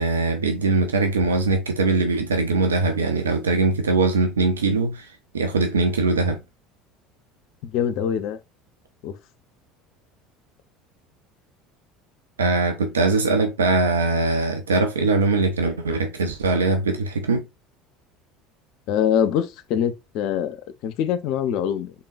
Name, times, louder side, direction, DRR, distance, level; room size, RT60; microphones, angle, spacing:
voice 1, 0.0-5.1 5.3-6.4 12.4-17.4, right 3 dB, 80° right, 0.6 m, -21 dB
voice 2, 7.6-8.4 9.0-9.1 18.9-21.9, left 9 dB, 55° left, 0.6 m, -24 dB
4.1 x 3.7 x 2.5 m
figure-of-eight pair, 65°, 0 cm